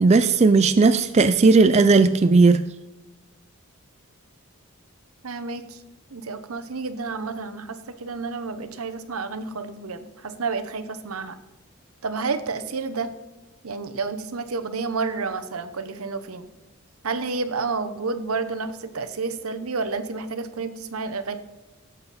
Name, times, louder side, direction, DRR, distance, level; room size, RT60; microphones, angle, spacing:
voice 1, 0.0-2.6, right 4 dB, 30° right, 0.3 m, -16 dB
voice 2, 5.2-5.8 6.1-11.4 12.0-13.1 13.6-16.5 17.0-21.4, right 4 dB, 80° right, 1.0 m, -30 dB
17.5 x 7.9 x 4.2 m
head